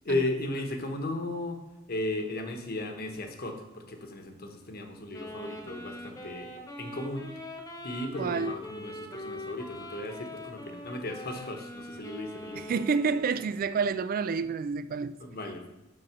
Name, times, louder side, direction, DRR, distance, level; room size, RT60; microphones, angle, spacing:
voice 1, 0.0-1.6 1.9-6.5 6.8-7.3 7.8-12.8 15.2-15.7, left 2 dB, 50° left, 1.2 m, -35 dB
Wind instrument woodwind instrument, 5.1-13.6, left 1 dB, 20° left, 1.2 m, -42 dB
voice 2, 8.2-8.5 12.6-15.1, right 5 dB, 45° right, 0.3 m, -29 dB
7.6 x 6.2 x 6.0 m
head